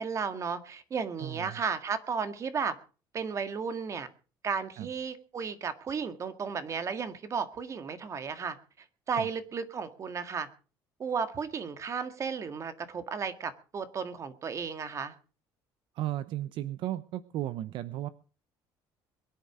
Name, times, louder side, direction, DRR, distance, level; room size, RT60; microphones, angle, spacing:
voice 1, 0.0-2.8 3.1-4.1 4.4-8.6 9.1-10.5 11.0-15.1, right 6 dB, 35° right, 10 dB, 1.9 m, -34 dB
voice 2, 1.2-1.6 4.8-4.9 9.2-9.3 15.9-18.1, right 13 dB, 65° right, 14 dB, 0.8 m, -35 dB
22.5 x 10.5 x 5.0 m, 0.37 s
cardioid pair, 135°, 9 cm